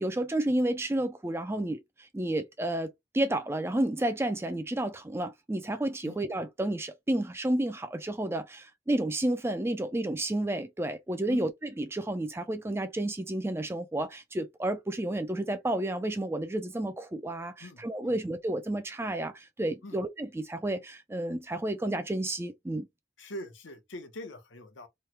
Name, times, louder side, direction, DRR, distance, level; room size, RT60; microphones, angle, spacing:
voice 1, 0.0-2.9 3.1-22.9, right 1 dB, 15° right, 0.3 m, -31 dB
voice 2, 17.6-18.1 19.8-20.0 23.2-24.9, left 1 dB, 80° left, 0.9 m, -43 dB
3.2 x 2.2 x 2.8 m
head